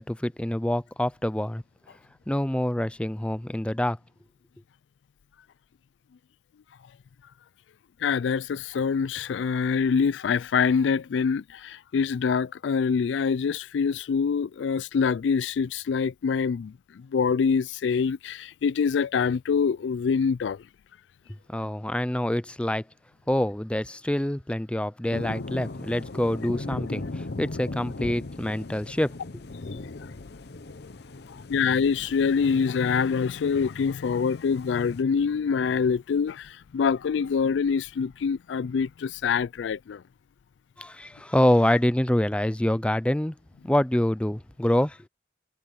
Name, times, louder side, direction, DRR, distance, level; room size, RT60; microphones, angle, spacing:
voice 1, 0.0-1.6 2.3-4.0 21.5-22.8 23.3-29.1 40.8-43.3 43.6-45.0, left 1 dB, 5° left, 0.5 m, -26 dB
voice 2, 8.0-20.6 30.0-30.1 31.3-40.0, left 6 dB, 85° left, 0.4 m, -25 dB
sound 1, 25.1-35.0, left 2 dB, 65° left, 0.8 m, -38 dB
head